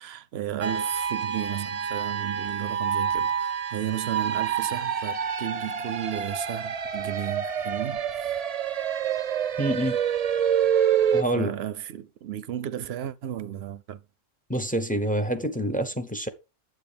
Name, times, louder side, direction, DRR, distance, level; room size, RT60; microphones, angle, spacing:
voice 1, 0.0-8.4 11.3-14.0, right 11 dB, 85° right, 0.9 m, -34 dB
sound 1, 0.6-11.2, right 8 dB, 45° right, 0.6 m, -27 dB
voice 2, 9.6-10.0 11.1-11.5 14.5-16.3, right 1 dB, 10° left, 0.8 m, -27 dB
9.1 x 8.0 x 3.4 m
omnidirectional pair, 1.0 m